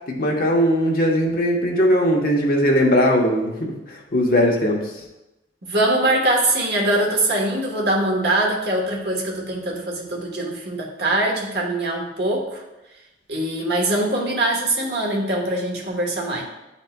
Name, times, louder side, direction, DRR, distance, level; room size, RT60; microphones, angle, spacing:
voice 1, 0.1-4.8, equal, 55° left, 0 dB, 1.0 m, -19 dB
voice 2, 5.6-12.6 13.3-16.4, right 1 dB, 65° right, -1 dB, 1.2 m, -22 dB
10.5 x 4.2 x 2.2 m, 0.98 s
head